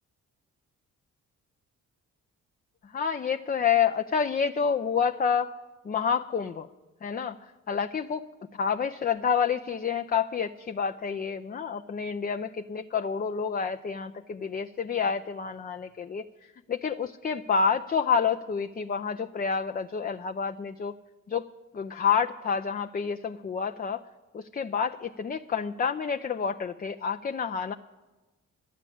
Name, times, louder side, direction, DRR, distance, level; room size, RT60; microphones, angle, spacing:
voice 1, 2.9-5.5 5.8-6.7 7.0-7.4 7.7-8.3 8.5-16.2 16.7-20.9 21.3-21.5 21.7-24.0 24.3-27.7, left 6 dB, 25° left, 6 dB, 0.5 m, -28 dB
11.5 x 8.4 x 8.5 m, 1.2 s
cardioid pair, 60°, 34 cm